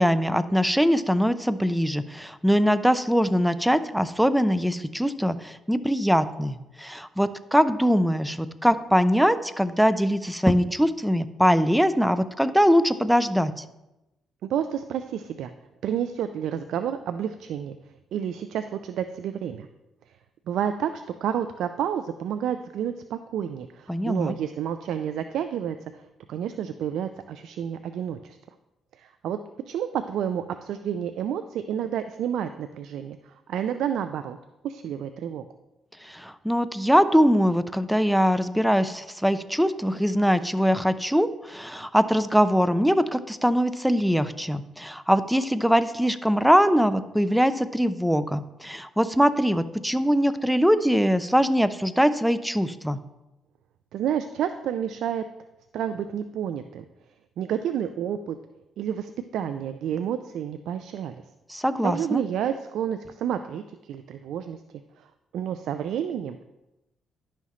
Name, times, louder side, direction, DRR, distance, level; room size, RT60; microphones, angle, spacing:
voice 1, 0.0-13.6 23.9-24.4 36.0-53.0 61.5-62.2, equal, ahead, 12 dB, 0.5 m, -22 dB
voice 2, 14.4-15.5 15.8-17.8 18.1-19.7 20.5-25.9 26.3-28.4 29.0-29.4 29.7-34.4 34.6-35.4 53.9-55.2 55.7-56.8 57.4-58.4 58.8-61.2 61.8-64.6 65.0-65.1 65.3-66.4, right 9 dB, 75° right, 10 dB, 0.3 m, -30 dB
11.0 x 5.7 x 3.1 m, 0.97 s
cardioid pair, 90°, 0 cm